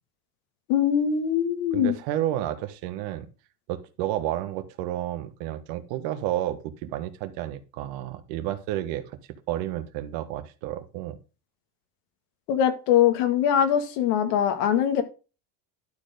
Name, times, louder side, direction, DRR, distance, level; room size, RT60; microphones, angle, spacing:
voice 1, 0.7-2.0 12.5-15.0, left 9 dB, 80° left, 8 dB, 2.0 m, -22 dB
voice 2, 1.7-3.3 3.7-9.0 9.5-11.2, right 13 dB, 75° right, 10 dB, 1.5 m, -31 dB
12.0 x 4.4 x 5.1 m, 0.32 s
supercardioid pair, 90°, 48 cm